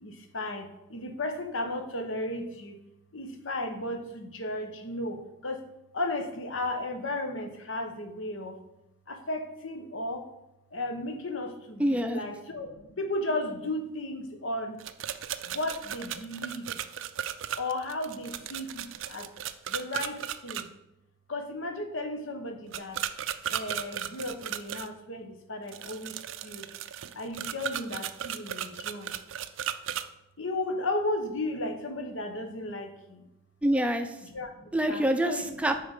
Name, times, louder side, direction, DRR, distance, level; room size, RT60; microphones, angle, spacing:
voice 1, 0.0-2.8 3.1-5.7 5.9-8.6 9.1-10.2 10.7-14.8 15.5-16.8 17.6-19.3 19.7-20.7 21.3-23.0 23.5-26.2 26.4-26.7 27.1-29.1 30.4-33.3 34.2-35.5, left 1 dB, 75° left, 6 dB, 1.1 m, -34 dB
voice 2, 11.8-12.2 33.6-34.2 34.7-35.9, right 1 dB, 5° right, 6 dB, 0.5 m, -26 dB
sound 1, 14.8-20.6 22.7-24.9 25.7-30.0, right 10 dB, 70° right, 0.4 m, -35 dB
7.9 x 4.2 x 6.6 m, 0.89 s
head